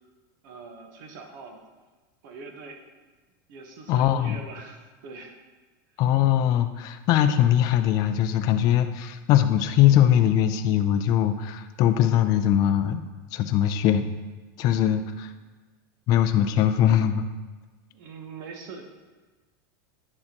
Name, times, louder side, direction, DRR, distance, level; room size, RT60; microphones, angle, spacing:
voice 1, 0.4-1.6 2.2-2.8 3.5-5.4 5.9-6.0 14.6-15.1 17.9-18.8, right 4 dB, 65° right, 3 dB, 1.2 m, -43 dB
voice 2, 3.9-4.4 6.0-13.0 13.3-14.1 14.6-15.3 16.1-17.3, left 10 dB, 35° left, 8 dB, 0.4 m, -21 dB
9.6 x 6.5 x 2.9 m, 1.3 s
supercardioid pair, 160°, 11 cm